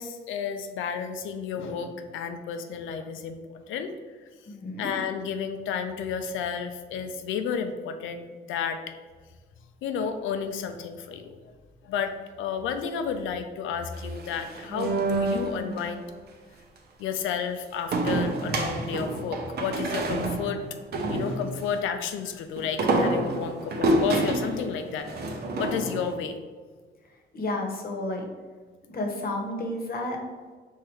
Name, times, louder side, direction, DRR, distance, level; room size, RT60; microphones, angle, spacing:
voice 1, 0.0-3.4 3.7-3.9 4.8-8.8 9.8-11.4 11.8-16.0 17.0-20.6 21.1-26.4, left 7 dB, 85° left, 8 dB, 0.5 m, -32 dB
voice 2, 4.5-4.9 27.3-28.2 28.9-30.2, left 1 dB, 50° left, 2 dB, 1.0 m, -31 dB
sound 1, 14.0-15.9 17.9-21.7 22.6-26.1, right 2 dB, 55° right, 0.8 m, -28 dB
4.6 x 3.6 x 3.2 m, 1.5 s
cardioid pair, 90°, 20 cm